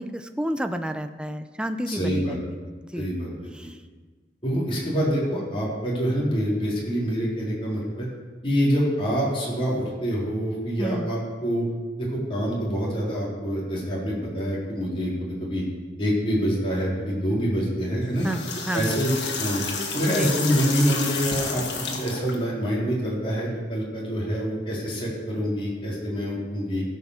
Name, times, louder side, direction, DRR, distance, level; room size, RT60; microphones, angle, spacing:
voice 1, 0.0-2.4 2.9-3.1 3.5-3.8 10.8-11.1 18.2-19.0 20.1-20.3, equal, 5° right, 8 dB, 0.6 m, -30 dB
voice 2, 1.9-2.4 3.0-3.3 3.6-3.7 4.4-8.1 8.4-11.7 12.0-15.6 16.0-18.3 18.7-19.1 19.4-19.7 19.9-26.8, equal, 30° left, -5 dB, 3.8 m, -26 dB
sound 1, 18.0-22.3, left 4 dB, 85° left, 2.0 m, -30 dB
16.5 x 5.8 x 6.5 m, 1.4 s
head